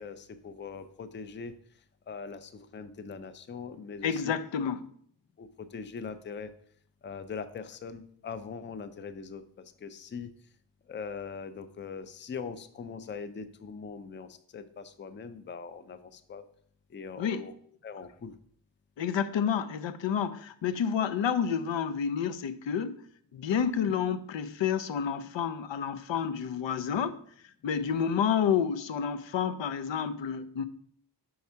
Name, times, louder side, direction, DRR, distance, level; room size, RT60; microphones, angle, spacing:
voice 1, 0.0-1.5 2.1-4.3 5.4-6.5 7.0-10.3 10.9-16.4 16.9-17.5 17.8-18.3, left 5 dB, 30° left, 0.4 m, -41 dB
voice 2, 4.0-4.9 17.2-17.5 19.0-23.0 23.3-27.2 27.6-30.6, left 7 dB, 90° left, 0.6 m, -29 dB
4.7 x 4.3 x 5.6 m
wide cardioid pair, 120°, 43 cm